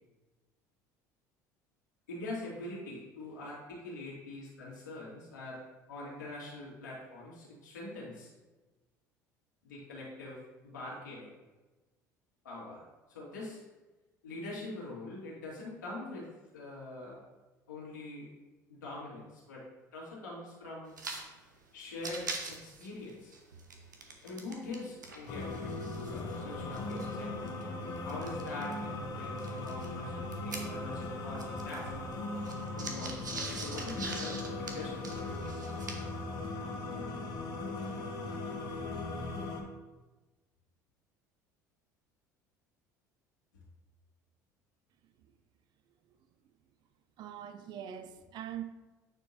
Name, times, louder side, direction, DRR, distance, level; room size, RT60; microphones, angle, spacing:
voice 1, 2.1-5.6 5.9-8.3 9.6-11.3 12.4-13.6 14.2-17.2 17.7-18.3 18.7-19.6 19.9-21.0 21.7-23.3 24.2-27.4 28.0-32.0 32.7-33.3 33.5-35.7, left 2 dB, 80° left, 2.2 m, -44 dB
sound 1, 20.9-21.2 21.5-21.6 21.9-24.8 25.0-28.7 29.4-31.1 31.3-36.2, right 3 dB, 85° right, 0.7 m, -43 dB
sound 2, 25.3-39.6, left 2 dB, 45° left, 1.1 m, -38 dB
voice 2, 47.2-48.6, right 10 dB, 50° right, 0.5 m, -43 dB
8.8 x 4.5 x 2.8 m
figure-of-eight pair, 65°, 10 cm